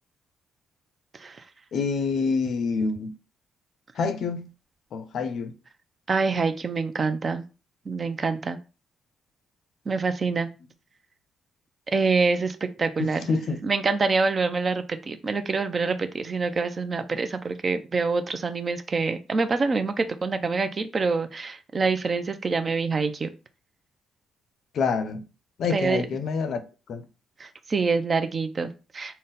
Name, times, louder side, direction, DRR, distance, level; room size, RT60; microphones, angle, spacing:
voice 1, 1.7-3.1 3.9-4.5 4.9-5.6 13.0-13.6 24.7-25.2 25.6-26.6 26.9-27.0, left 4 dB, 65° left, 0.5 m, -27 dB
voice 2, 6.1-7.4 7.9-8.6 9.9-10.5 11.9-13.3 13.6-23.3 25.7-26.1 27.4-29.2, right 4 dB, 35° right, 0.5 m, -26 dB
3.8 x 2.1 x 3.9 m
cardioid pair, 90°, 0 cm